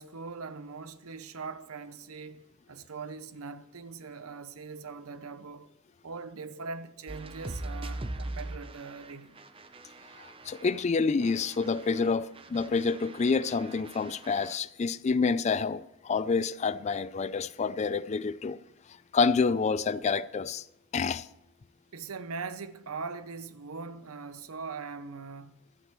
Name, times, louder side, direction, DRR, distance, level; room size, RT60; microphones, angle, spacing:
voice 1, 0.0-5.7 6.0-9.3 21.9-25.5, right 4 dB, 80° right, 0.8 m, -41 dB
sound 1, 7.1-10.9 11.2-14.6, right 2 dB, 25° right, 0.6 m, -42 dB
voice 2, 10.2-18.6 19.1-20.6 20.9-21.3, left 4 dB, 30° left, 0.3 m, -28 dB
15.0 x 12.5 x 3.1 m
head